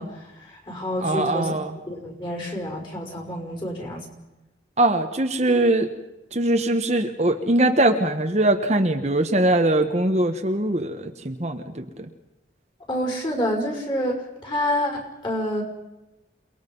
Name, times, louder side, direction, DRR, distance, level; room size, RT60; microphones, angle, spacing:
voice 1, 0.0-1.5 1.9-4.1 12.9-15.6, left 1 dB, 25° left, 1 dB, 5.6 m, -28 dB
voice 2, 1.0-1.8 4.8-5.9 6.3-12.1, right 1 dB, 40° right, 5 dB, 1.3 m, -22 dB
29.0 x 20.5 x 5.5 m, 0.98 s
head